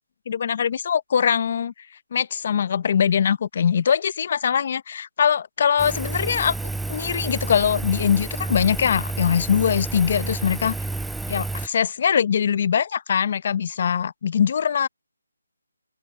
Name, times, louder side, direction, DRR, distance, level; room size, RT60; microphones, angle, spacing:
voice 1, 0.3-1.7 2.1-6.6 6.9-10.8 11.3-14.9, left 7 dB, 40° left, 0.8 m, -22 dB
Engine, 5.8-11.7, right 3 dB, ahead, 0.3 m, -30 dB
open air
hypercardioid pair, 165°, 0 cm